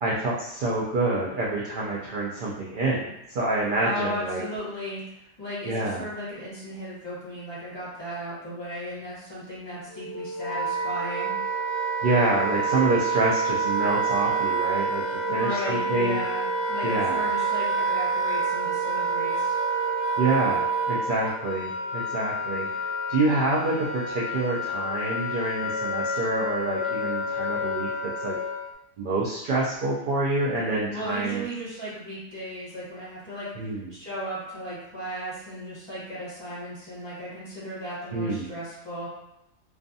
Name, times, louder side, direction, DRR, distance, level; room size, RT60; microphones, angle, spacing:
voice 1, 0.0-4.4 5.7-6.1 12.0-15.0 15.3-16.2 16.8-17.2 20.2-27.9 28.2-28.4 29.0-31.4 33.6-33.9 38.1-38.5, right 2 dB, 65° right, -6 dB, 0.5 m, -27 dB
voice 2, 3.8-11.3 15.3-19.6 30.9-39.1, equal, 20° left, -10 dB, 0.9 m, -36 dB
Wind instrument woodwind instrument, 9.9-28.7, right 2 dB, 60° left, 0.8 m, -28 dB
2.4 x 2.4 x 2.6 m, 0.85 s
omnidirectional pair, 1.4 m